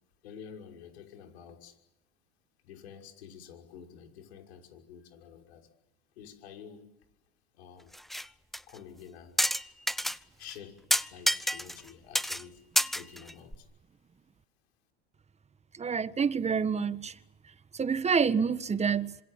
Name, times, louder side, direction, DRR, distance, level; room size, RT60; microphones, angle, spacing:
voice 1, 0.2-1.7 2.6-5.7 6.2-6.9 7.5-7.9 8.7-9.4 10.4-10.8 11.1-12.6 12.9-13.7, left 8 dB, 80° left, 5.9 m, -49 dB
sound 1, 7.9-8.3 8.5-8.6 9.4-10.2 10.5-10.6 10.9-11.9 12.2-12.4 12.8-13.6, equal, ahead, 0.9 m, -28 dB
voice 2, 15.8-17.1 17.8-19.1, right 6 dB, 20° right, 1.5 m, -27 dB
26.5 x 26.5 x 7.5 m
hypercardioid pair, 95°, 32 cm